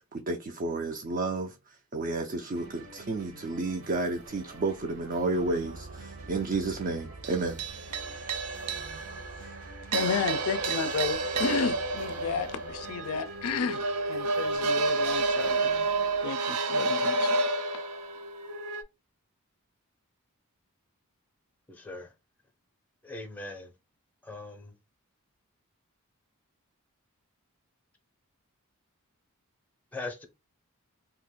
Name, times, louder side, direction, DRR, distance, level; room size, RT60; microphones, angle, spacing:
voice 1, 0.0-7.6, right 3 dB, 40° right, 0.4 m, -31 dB
sound 1, 2.5-16.3, right 2 dB, 65° right, 0.9 m, -49 dB
sound 2, 5.5-18.8, right 3 dB, 90° right, 0.5 m, -31 dB
voice 2, 9.9-13.8 14.1-15.7 16.2-17.3, left 5 dB, 75° left, 0.4 m, -32 dB
voice 3, 21.7-22.1 23.0-23.7 24.2-24.7 29.9-30.3, left 2 dB, 5° left, 0.6 m, -40 dB
2.7 x 2.4 x 3.6 m
head